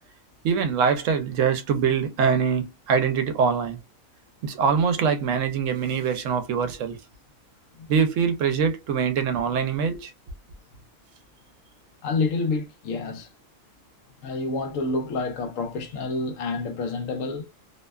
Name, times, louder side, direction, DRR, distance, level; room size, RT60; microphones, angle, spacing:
voice 1, 0.4-3.8 4.4-7.0 7.9-10.1, right 6 dB, 75° right, 0.9 m, -23 dB
voice 2, 12.0-13.3 14.2-17.5, left 3 dB, 80° left, 1.0 m, -28 dB
2.7 x 2.1 x 2.2 m
omnidirectional pair, 1.4 m